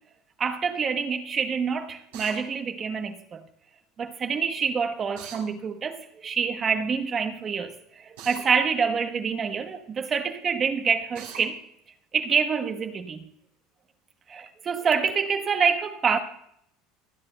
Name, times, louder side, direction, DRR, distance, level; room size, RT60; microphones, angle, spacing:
voice 1, 0.4-3.4 4.0-11.6 12.1-13.3 14.3-16.2, right 6 dB, 35° right, 0.9 m, -26 dB
Drill, 2.1-2.4 5.2-5.4 8.2-8.5 11.1-11.4, right 9 dB, 90° right, 3.4 m, -40 dB
23.0 x 8.7 x 2.2 m
supercardioid pair, 115°, 0 cm